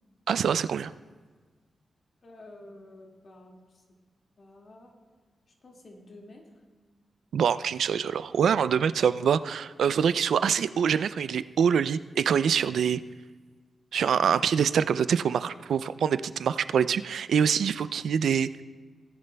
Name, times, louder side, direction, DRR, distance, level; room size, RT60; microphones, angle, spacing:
voice 1, 0.3-0.9 7.3-13.0 13.9-18.5, right 7 dB, 85° right, 15 dB, 0.3 m, -25 dB
voice 2, 2.2-3.8 4.4-4.9 5.5-6.6, left 1 dB, 50° left, 0 dB, 1.9 m, -50 dB
18.0 x 10.5 x 2.2 m, 1.4 s
wide cardioid pair, 120°, 0 cm